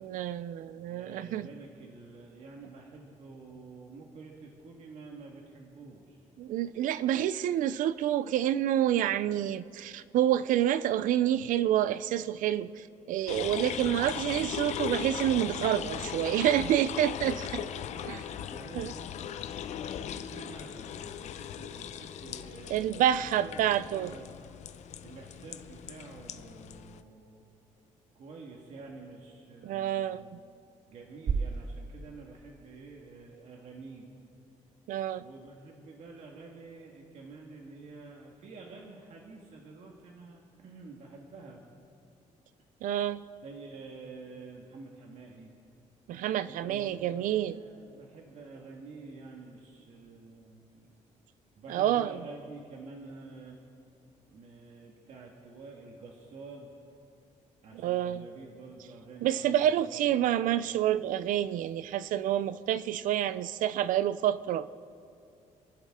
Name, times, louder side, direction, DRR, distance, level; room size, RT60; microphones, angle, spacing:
voice 1, 0.0-1.5 6.4-17.4 18.7-18.9 22.7-24.1 29.6-30.4 34.9-35.2 42.8-43.2 46.1-47.5 51.7-52.1 57.7-58.2 59.2-64.7, right 11 dB, 85° right, 0.5 m, -28 dB
voice 2, 0.9-6.3 17.2-19.3 19.9-24.3 25.0-27.4 28.2-30.3 30.9-34.1 35.2-41.6 43.4-45.5 46.4-50.9 51.6-53.6 54.3-56.7 57.6-60.7, right 3 dB, 60° right, 1.8 m, -49 dB
sound 1, 13.3-27.0, left 9 dB, 60° left, 0.6 m, -38 dB
sound 2, 31.3-33.3, right 5 dB, 30° right, 0.4 m, -35 dB
28.5 x 11.5 x 3.7 m
cardioid pair, 170°, 13 cm